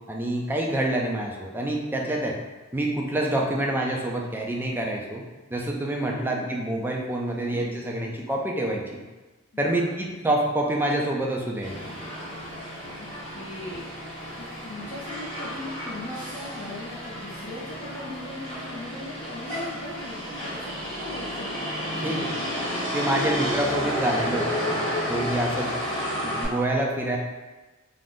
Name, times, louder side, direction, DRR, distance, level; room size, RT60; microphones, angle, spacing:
voice 1, 0.0-2.4 2.7-5.2 5.5-9.0 9.6-11.7 22.0-22.3 22.9-24.8 25.1-25.7 26.2-27.2, right 1 dB, 10° right, -1 dB, 0.3 m, -27 dB
voice 2, 3.3-3.7 6.0-6.5 7.3-7.6 9.5-10.1 13.0-13.1 13.3-13.9 14.4-21.5 21.9-22.6 23.1-23.3 25.4-26.0, left 1 dB, 60° left, -9 dB, 0.6 m, -40 dB
Motor vehicle (road), 11.6-26.4, equal, 25° left, 1.5 m, -31 dB
2.5 x 2.4 x 3.5 m, 1.2 s
head